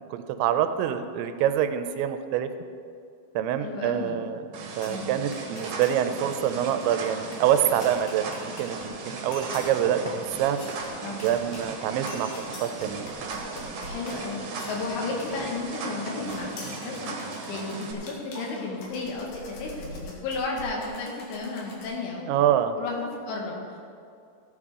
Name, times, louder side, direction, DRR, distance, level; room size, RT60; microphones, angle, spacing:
voice 1, 0.0-2.5 3.4-4.4 4.8-10.6 11.2-12.3 12.6-13.1 22.3-22.8, right 10 dB, 85° right, 9 dB, 2.8 m, -26 dB
voice 2, 3.6-4.2 4.9-5.3 11.0-11.3 13.8-17.2 17.5-22.4 22.8-23.8, left 3 dB, 90° left, -1 dB, 4.1 m, -33 dB
sound 1, 4.5-17.9, right 4 dB, 65° right, 2.2 m, -37 dB
sound 2, 4.8-5.1 5.3-6.0 6.3-6.4 6.6-22.0, left 2 dB, 60° left, 3.0 m, -43 dB
14.5 x 9.9 x 3.7 m, 2.4 s
omnidirectional pair, 5.4 m